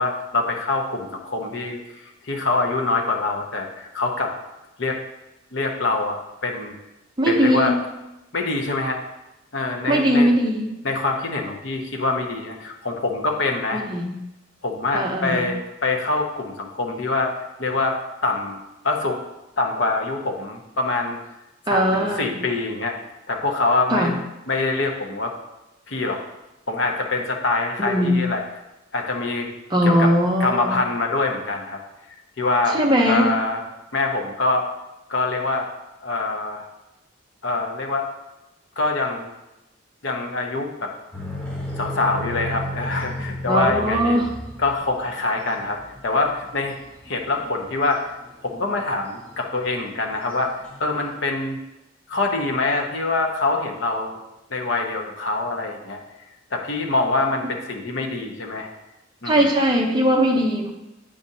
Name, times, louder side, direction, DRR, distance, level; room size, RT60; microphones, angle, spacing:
voice 1, 0.0-4.3 4.8-5.0 5.5-6.8 7.3-7.7 8.3-9.0 9.5-10.3 10.8-13.8 14.6-17.3 17.6-19.2 19.6-21.2 21.7-23.0 23.3-24.2 24.5-25.3 25.9-26.2 26.7-28.4 28.9-29.5 29.8-30.1 30.4-31.8 32.4-32.8 33.0-33.6 33.9-34.7 35.1-35.7 36.0-36.7 37.4-38.1 38.8-39.3 40.0-40.9 41.8-44.2 44.6-46.7 47.1-48.2 48.4-50.5 50.8-51.6 52.1-54.2 54.5-56.0 56.5-58.7 59.2-59.5, left 3 dB, 60° left, 2 dB, 0.9 m, -24 dB
voice 2, 7.2-7.8 9.9-10.7 13.7-14.2 14.9-15.5 21.7-22.3 23.9-24.1 27.8-28.2 29.7-30.7 32.7-33.3 43.5-44.3 59.3-60.7, equal, 20° right, 0 dB, 0.8 m, -20 dB
sound 1, 41.1-47.9 48.6-49.0 49.3-49.4 49.8-51.2, equal, 5° left, 1.0 m, -33 dB
8.5 x 5.2 x 2.7 m, 0.96 s
head